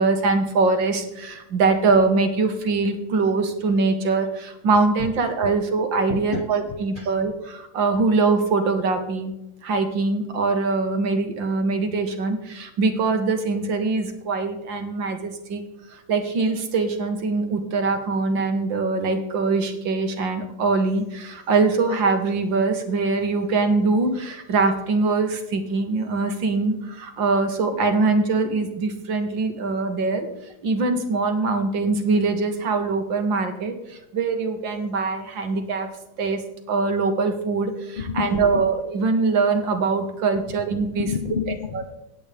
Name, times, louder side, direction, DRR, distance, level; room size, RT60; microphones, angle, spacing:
voice 1, 0.0-9.3 9.6-15.6 15.9-30.3 30.6-35.9 36.2-36.4 36.7-41.1 41.7-41.8, right 3 dB, 80° right, 6 dB, 2.1 m, -23 dB
voice 2, 6.1-6.6 7.0-7.1 35.5-35.6 38.0-38.2 38.5-38.6 41.0-41.9, left 5 dB, 85° left, 7 dB, 0.4 m, -29 dB
17.5 x 9.3 x 3.4 m, 0.90 s
omnidirectional pair, 2.0 m